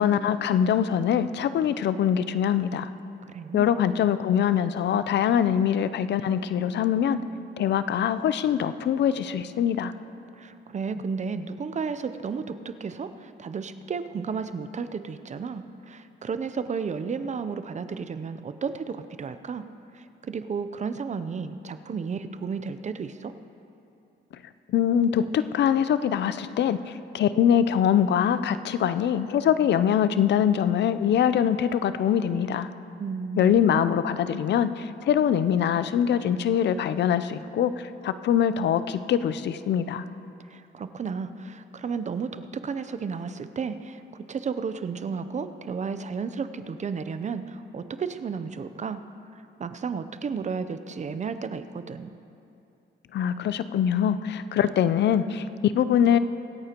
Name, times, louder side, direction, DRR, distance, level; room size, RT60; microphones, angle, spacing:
voice 1, 0.0-2.9 3.5-7.2 7.6-9.9 24.7-32.7 33.4-40.0 53.1-56.2, left 9 dB, 60° left, 13 dB, 0.6 m, -23 dB
voice 2, 3.2-3.7 10.3-19.6 19.9-23.3 33.0-33.8 40.5-49.0 49.3-52.2, right 5 dB, 35° right, 11 dB, 0.6 m, -33 dB
25.0 x 8.9 x 3.0 m, 2.7 s
cardioid pair, 90°, 20 cm